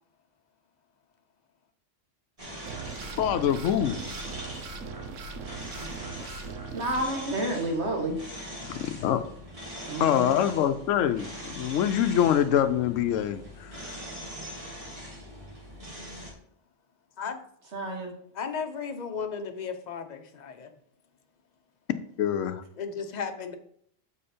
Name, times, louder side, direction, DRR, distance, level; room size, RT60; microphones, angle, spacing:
sound 1, 2.4-16.3, equal, 25° right, 1.9 m, -42 dB
sound 2, 2.7-7.0, right 5 dB, 75° right, 1.1 m, -39 dB
voice 1, 3.2-4.0 8.6-9.2 9.9-14.0 22.2-22.6, left 10 dB, 80° left, 9 dB, 0.9 m, -25 dB
voice 2, 6.7-8.2 9.9-10.3 17.7-18.1, right 1 dB, 60° right, 1 dB, 1.6 m, -30 dB
voice 3, 18.3-20.7 22.8-23.5, left 6 dB, 40° left, 6 dB, 0.8 m, -35 dB
7.4 x 5.0 x 4.3 m, 0.64 s
omnidirectional pair, 1.3 m